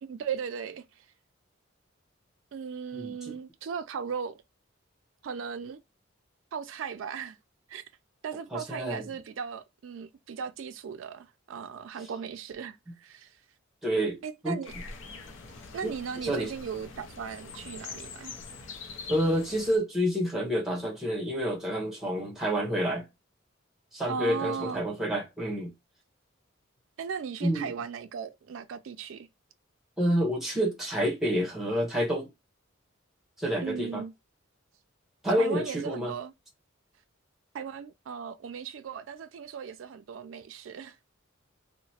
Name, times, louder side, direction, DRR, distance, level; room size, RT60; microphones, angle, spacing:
voice 1, 0.0-1.1 2.5-4.4 5.2-5.8 6.5-7.4 7.7-7.8 8.2-13.4 14.2-14.7 15.7-18.4 24.1-24.8 27.0-29.3 33.6-34.1 35.4-36.3 37.5-41.0, right 6 dB, 70° right, 0.4 m, -37 dB
voice 2, 2.9-3.4 8.5-9.0 13.8-14.6 15.8-15.9 16.2-16.5 19.1-23.0 23.9-25.7 27.4-27.7 30.0-32.3 33.4-34.0 35.2-36.1, equal, ahead, 1.0 m, -28 dB
sound 1, 14.6-19.8, left 4 dB, 65° left, 0.6 m, -44 dB
2.9 x 2.1 x 2.7 m
head